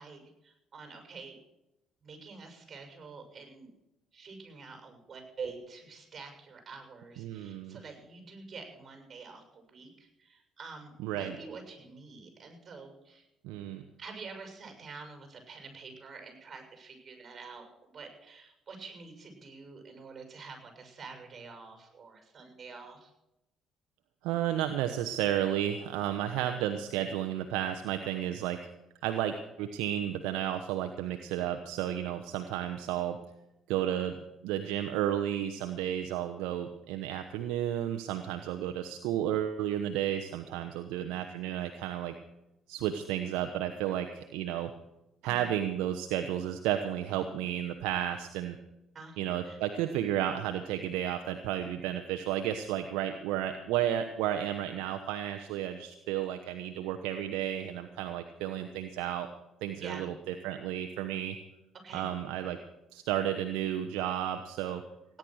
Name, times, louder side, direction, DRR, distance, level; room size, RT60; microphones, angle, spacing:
voice 1, 0.0-1.4 2.0-3.7 4.1-13.3 14.0-23.1 45.2-45.5 48.9-49.6 59.8-60.1 61.8-62.1, right 4 dB, 40° right, 5 dB, 7.0 m, -47 dB
voice 2, 7.2-7.8 11.0-11.4 13.4-13.8 24.2-28.7 29.0-33.2 33.7-34.1 34.4-42.1 42.7-44.7 45.2-48.6 49.2-59.3 59.6-61.4 61.9-62.6 62.9-64.8, right 11 dB, 85° right, 6 dB, 1.0 m, -32 dB
17.0 x 10.5 x 6.4 m, 0.89 s
supercardioid pair, 75°, 0 cm